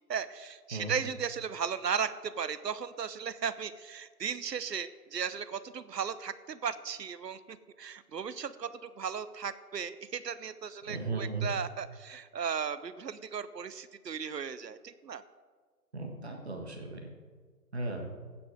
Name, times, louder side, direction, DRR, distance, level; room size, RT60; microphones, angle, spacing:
voice 1, 0.1-15.2, right 7 dB, 85° right, 14 dB, 0.8 m, -36 dB
voice 2, 10.8-11.5 15.9-17.0 17.7-18.1, right 3 dB, 40° right, 3 dB, 1.6 m, -36 dB
16.0 x 6.1 x 4.9 m, 1.5 s
figure-of-eight pair, 170°, 48 cm